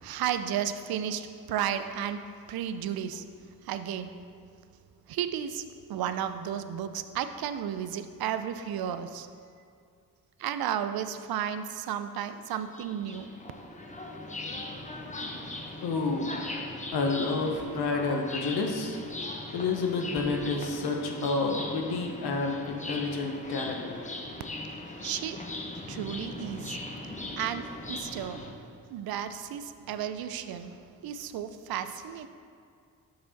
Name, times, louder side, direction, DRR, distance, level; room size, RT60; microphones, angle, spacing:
voice 1, 0.0-2.2 2.5-3.3 3.6-4.1 5.1-5.6 5.9-9.3 10.4-13.3 25.0-25.4 25.9-26.8 27.4-28.5 28.9-32.3, right 9 dB, 70° right, 10 dB, 0.5 m, -33 dB
sound 1, 12.5-28.5, left 2 dB, 20° left, 0.7 m, -39 dB
voice 2, 15.8-16.4 16.9-19.0 19.5-23.8, left 3 dB, 75° left, 2 dB, 0.8 m, -29 dB
6.0 x 5.1 x 4.0 m, 2.2 s
cardioid pair, 60°, 38 cm